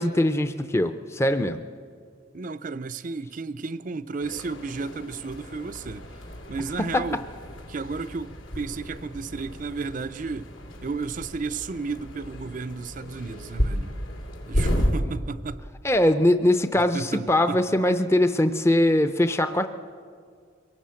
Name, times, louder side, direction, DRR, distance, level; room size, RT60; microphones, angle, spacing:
voice 1, 0.0-1.6 6.8-7.1 15.0-15.1 15.8-19.7, left 1 dB, 15° left, 0.6 m, -22 dB
voice 2, 2.3-6.1 6.5-7.2 7.7-10.5 10.8-14.0 14.5-15.6 16.9-17.6, right 4 dB, 40° right, 0.5 m, -33 dB
sound 1, 4.2-14.9, equal, 85° left, 2.7 m, -32 dB
23.0 x 18.0 x 7.6 m
head